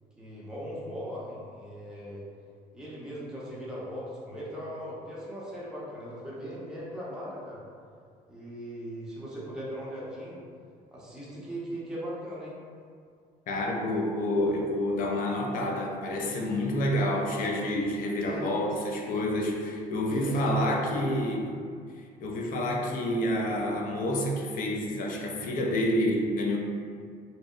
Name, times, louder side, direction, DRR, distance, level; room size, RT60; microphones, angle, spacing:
voice 1, 0.2-2.2 2.7-7.6 8.3-10.4 10.9-12.6 18.2-18.5 20.1-20.9, equal, 5° right, -7 dB, 0.6 m, -39 dB
voice 2, 13.5-21.6 22.2-26.6, left 1 dB, 55° left, 0 dB, 0.4 m, -28 dB
2.7 x 2.0 x 2.4 m, 2.2 s
cardioid pair, 110°, 17 cm